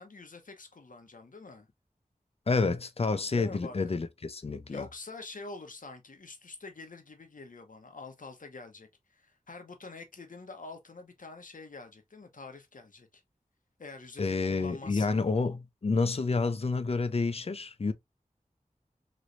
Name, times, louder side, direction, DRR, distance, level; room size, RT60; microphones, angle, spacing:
voice 1, 0.0-1.7 3.3-3.8 4.7-13.2 13.8-15.2, left 3 dB, 65° left, 0.9 m, -46 dB
voice 2, 2.5-4.9 14.2-17.9, left 4 dB, 45° left, 0.5 m, -29 dB
3.1 x 3.0 x 2.5 m
wide cardioid pair, 55°, 14 cm